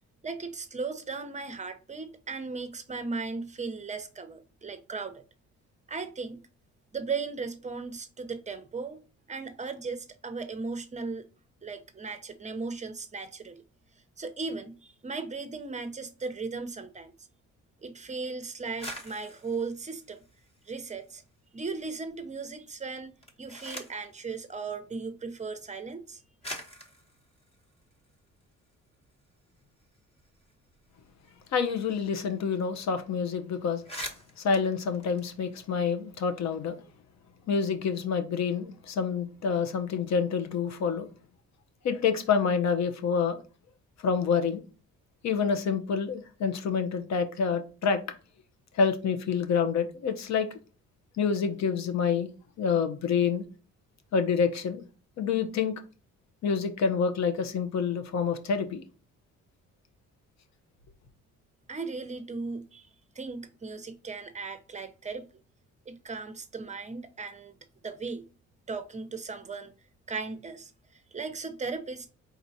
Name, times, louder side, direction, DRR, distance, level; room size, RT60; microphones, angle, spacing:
voice 1, 0.2-5.2 5.9-6.4 6.9-9.0 9.3-11.3 11.6-13.6 14.2-17.1 17.8-20.2 20.7-21.2 21.5-26.2 61.7-62.9 63.1-65.3 65.9-67.6 67.8-68.3 68.7-69.7 70.1-72.1, right 4 dB, 25° right, 0.7 m, -37 dB
sound 1, 18.6-21.2 21.6-22.3 23.0-24.1 25.2-25.3 26.0-26.1 26.4-28.7 29.1-29.2 29.5-32.1 32.3-32.5 32.7-33.0 33.4-33.5 33.7-35.9, equal, 20° left, 1.1 m, -45 dB
voice 2, 31.5-33.8 34.4-36.8 37.5-41.1 41.8-43.4 44.0-44.6 45.2-48.0 48.7-50.5 51.2-52.3 52.6-53.4 54.1-54.8 55.2-55.7 56.4-58.8, left 6 dB, 65° left, 0.9 m, -27 dB
4.6 x 3.9 x 2.7 m
cardioid pair, 90°, 30 cm